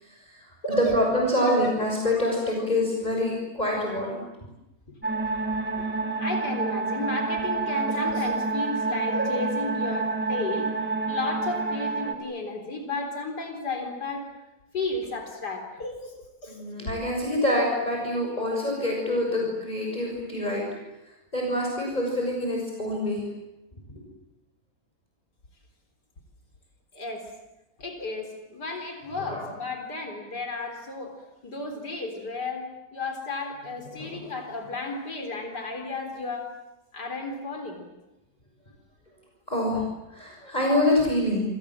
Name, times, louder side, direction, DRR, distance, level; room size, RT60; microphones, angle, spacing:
voice 1, 0.0-4.3 16.5-20.6 21.3-23.2 29.2-29.5 33.9-34.3 39.5-41.4, left 1 dB, 25° left, -1 dB, 6.7 m, -26 dB
voice 2, 0.6-1.0 1.4-1.8 2.2-2.3 5.8-5.9 6.2-10.7 11.1-14.3 14.7-16.2 16.4-16.6 26.9-27.3 27.8-31.2 31.4-36.5 36.9-37.9, left 2 dB, 90° left, 4 dB, 4.6 m, -33 dB
sound 1, 5.0-12.1, right 3 dB, 5° right, 3.0 m, -28 dB
29.5 x 26.5 x 7.6 m, 0.94 s
omnidirectional pair, 1.7 m